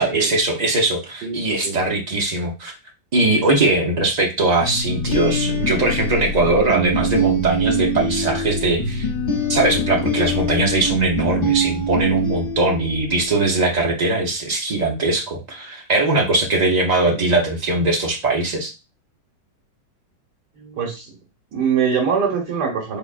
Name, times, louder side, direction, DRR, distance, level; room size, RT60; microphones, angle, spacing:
voice 1, 0.0-2.7 3.1-9.1 9.5-18.7, right 2 dB, 50° right, 0 dB, 0.4 m, -20 dB
sound 1, 4.6-13.3, right 1 dB, 55° left, 0.6 m, -23 dB
voice 2, 20.6-21.1 21.5-23.0, right 6 dB, 75° right, -1 dB, 1.6 m, -23 dB
3.6 x 3.3 x 2.4 m, 0.27 s
omnidirectional pair, 1.8 m